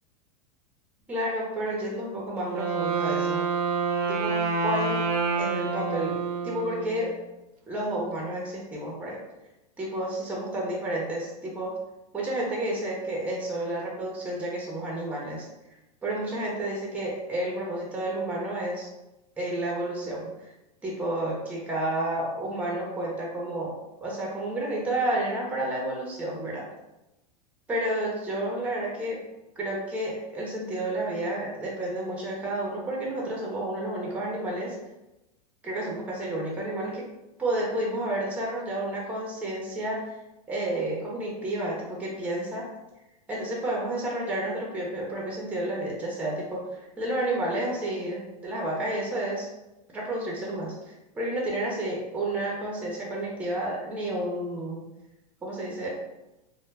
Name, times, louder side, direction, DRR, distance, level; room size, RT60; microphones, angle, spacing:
voice 1, 1.1-3.4 4.1-5.1 5.4-7.1 7.7-9.2 9.8-11.8 12.1-15.5 16.0-18.9 19.4-20.3 20.8-26.7 27.7-29.2 29.6-34.7 35.6-37.1 37.4-40.1 40.5-42.6 43.3-46.6 47.0-49.5 49.9-50.7 51.1-54.8 55.4-55.9, right 1 dB, 5° right, -3 dB, 0.6 m, -30 dB
Wind instrument woodwind instrument, 2.4-7.2, right 4 dB, 70° right, 0.5 m, -28 dB
2.1 x 2.1 x 3.2 m, 0.96 s
supercardioid pair, 130°, 20 cm